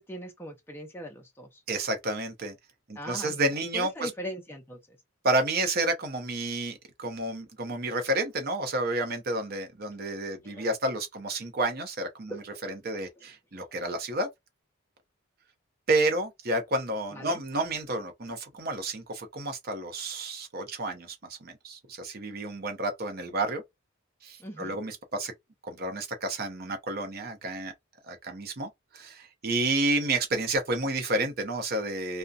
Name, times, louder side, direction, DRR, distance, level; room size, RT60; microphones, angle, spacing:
voice 1, 0.0-1.6 3.0-5.0 10.0-10.1 10.4-10.7 12.3-12.5 12.9-13.3 17.1-17.4 24.4-24.8, equal, 10° left, 0.5 m, -40 dB
voice 2, 1.7-2.5 2.9-4.1 5.2-12.3 12.6-14.3 15.9-23.6 24.2-25.3 25.6-27.7 28.1-32.2, right 2 dB, 45° right, 0.7 m, -30 dB
2.6 x 2.2 x 2.3 m
head